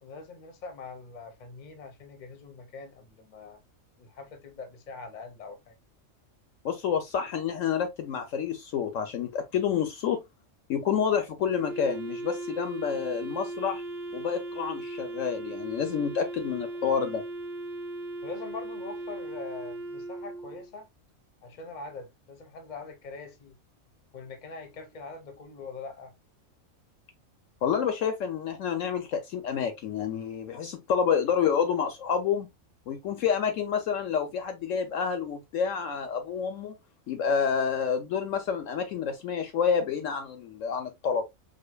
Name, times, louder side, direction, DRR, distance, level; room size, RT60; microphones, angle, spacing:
voice 1, 0.0-3.6 4.0-5.7 18.2-20.9 21.4-23.6 24.1-26.1, left 4 dB, 40° left, 0.8 m, -43 dB
voice 2, 6.6-10.2 10.7-13.8 14.1-17.2 27.6-32.5 32.9-36.7 37.1-41.2, left 7 dB, 70° left, 1.0 m, -28 dB
Wind instrument woodwind instrument, 11.5-20.7, right 2 dB, 50° right, 1.0 m, -37 dB
4.9 x 2.4 x 2.2 m
omnidirectional pair, 1.5 m